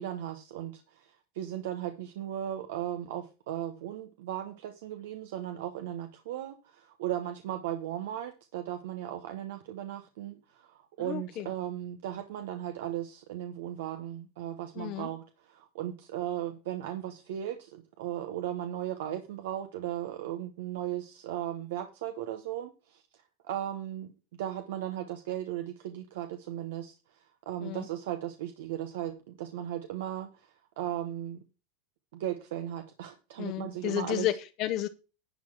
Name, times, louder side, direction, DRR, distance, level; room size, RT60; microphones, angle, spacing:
voice 1, 0.0-23.0 23.4-24.1 24.4-31.4 32.1-34.3, right 12 dB, 80° right, 7 dB, 1.0 m, -37 dB
voice 2, 11.0-11.5 14.7-15.1 27.6-27.9 33.4-34.9, left 13 dB, 55° left, 9 dB, 0.8 m, -32 dB
11.0 x 3.9 x 7.6 m, 0.33 s
supercardioid pair, 120°, 0 cm